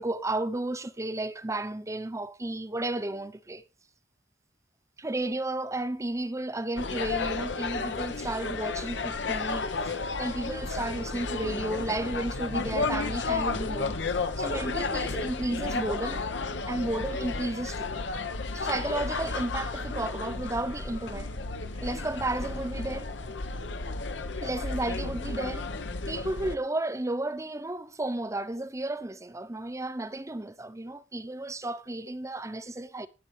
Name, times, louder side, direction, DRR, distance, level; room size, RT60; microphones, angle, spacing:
voice 1, 0.0-3.6 5.0-17.9 18.5-21.3 21.8-23.1 24.4-25.7 26.1-33.1, right 2 dB, 15° right, 0.8 m, -33 dB
sound 1, 6.8-26.6, left 3 dB, 85° left, 1.1 m, -32 dB
19.0 x 6.8 x 3.3 m
head